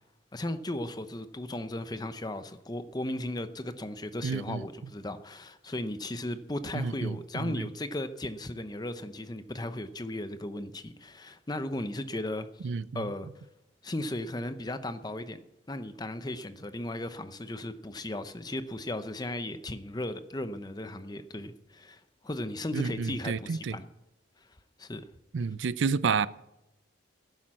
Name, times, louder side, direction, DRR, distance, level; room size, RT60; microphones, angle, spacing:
voice 1, 0.3-12.5 12.9-13.3 13.8-15.4 15.7-23.9 24.8-25.0, left 1 dB, 20° left, 0.7 m, -36 dB
voice 2, 4.2-4.7 6.7-7.7 12.6-13.1 22.7-23.8 25.3-26.3, right 5 dB, 75° right, 0.5 m, -30 dB
12.0 x 10.5 x 7.5 m
head